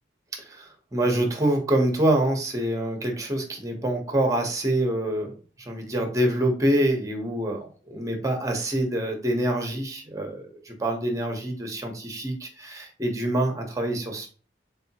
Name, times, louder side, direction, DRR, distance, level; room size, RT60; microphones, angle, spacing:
voice 1, 0.4-5.3 5.6-14.3, right 1 dB, 20° right, 4 dB, 0.9 m, -26 dB
3.7 x 3.4 x 2.8 m, 0.38 s
head